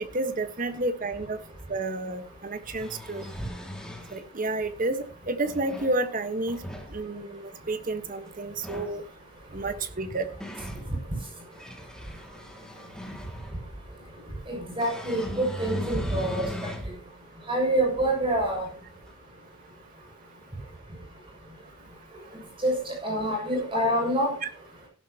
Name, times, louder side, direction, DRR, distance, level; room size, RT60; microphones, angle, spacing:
voice 1, 0.0-1.4 1.7-3.2 4.1-6.6 6.9-9.0 9.5-10.3, right 2 dB, 45° right, 9 dB, 1.4 m, -30 dB
sound 1, 1.6-1.7 2.5-4.2 5.2-6.0 6.4-6.9 8.5-9.0 9.9-10.8 11.4-13.6 14.8-16.9 17.4-17.5 19.1-19.2, left 1 dB, 5° left, 2.3 m, -39 dB
voice 2, 14.5-16.5 17.5-18.7 22.6-24.3, right 1 dB, 25° right, -1 dB, 6.5 m, -26 dB
16.0 x 12.0 x 2.9 m, 0.34 s
head